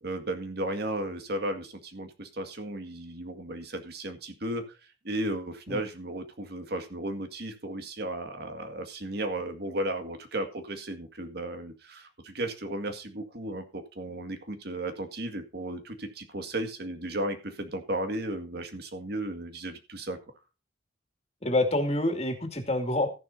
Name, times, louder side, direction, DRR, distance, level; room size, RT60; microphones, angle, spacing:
voice 1, 0.0-4.8 5.0-20.2, right 1 dB, 55° right, 6 dB, 1.9 m, -34 dB
voice 2, 21.4-23.1, left 1 dB, 35° left, 5 dB, 2.5 m, -27 dB
14.0 x 11.0 x 2.7 m, 0.31 s
head